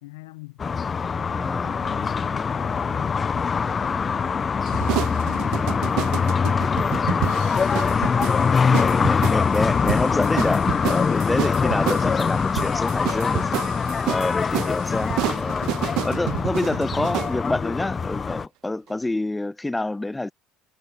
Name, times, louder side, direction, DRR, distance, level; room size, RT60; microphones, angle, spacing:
voice 1, 0.0-0.6 1.2-3.3, left 20 dB, 85° left, 1.2 m, -45 dB
sound 1, 0.6-18.5, left 6 dB, 30° left, 0.8 m, -23 dB
voice 2, 1.3-1.7 7.0-7.4 8.8-13.5 14.1-15.7 16.0-20.3, left 2 dB, 10° left, 0.4 m, -27 dB
sound 2, 4.7-17.4, right 19 dB, 65° right, 0.6 m, -30 dB
hypercardioid pair, 75°, 0 cm